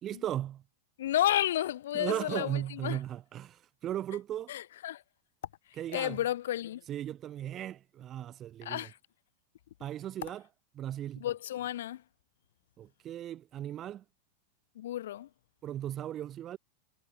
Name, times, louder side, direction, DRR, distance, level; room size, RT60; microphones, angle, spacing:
voice 1, 0.0-0.6 1.9-4.5 5.8-6.2 6.9-8.9 9.8-10.4 10.7-11.2 12.8-14.0 15.6-16.6, right 11 dB, 30° right, 1.8 m, -37 dB
voice 2, 1.0-3.0 4.5-5.0 5.9-6.8 8.6-9.0 11.2-12.0 14.8-15.3, left 12 dB, 60° left, 3.8 m, -32 dB
figure-of-eight pair, 90°, 0 cm